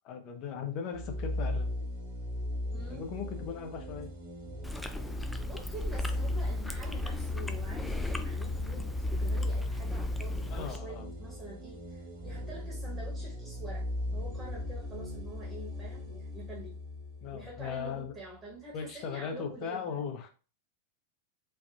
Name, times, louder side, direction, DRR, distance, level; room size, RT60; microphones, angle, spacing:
voice 1, 0.1-1.7 2.9-4.1 10.5-11.1 17.2-18.1 18.7-20.3, left 6 dB, 40° left, 5 dB, 0.6 m, -38 dB
sound 1, 0.9-18.3, left 1 dB, 45° right, 0.7 m, -36 dB
voice 2, 2.7-3.1 5.0-5.1 5.4-13.8 14.1-16.8 17.3-20.1, right 2 dB, 15° right, -3 dB, 1.1 m, -47 dB
Chewing mastication, 4.6-10.8, left 1 dB, 5° left, 0.3 m, -39 dB
3.3 x 2.4 x 2.4 m, 0.35 s
figure-of-eight pair, 90°, 0 cm